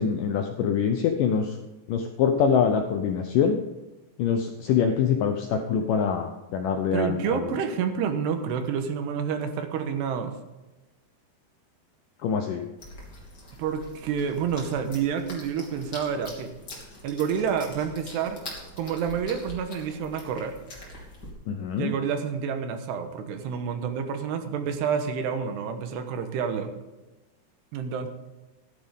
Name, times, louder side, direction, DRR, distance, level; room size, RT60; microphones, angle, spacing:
voice 1, 0.0-1.6 1.9-3.6 4.2-7.5 12.2-12.6 21.5-21.9, left 7 dB, 80° left, 4 dB, 1.9 m, -24 dB
voice 2, 6.9-10.4 13.6-16.5 17.0-18.4 18.8-20.6 21.8-26.7 27.7-28.1, right 7 dB, 80° right, 7 dB, 3.2 m, -29 dB
sound 1, 12.8-21.3, left 1 dB, 30° left, 2.8 m, -44 dB
14.0 x 11.5 x 3.7 m, 1.1 s
omnidirectional pair, 4.8 m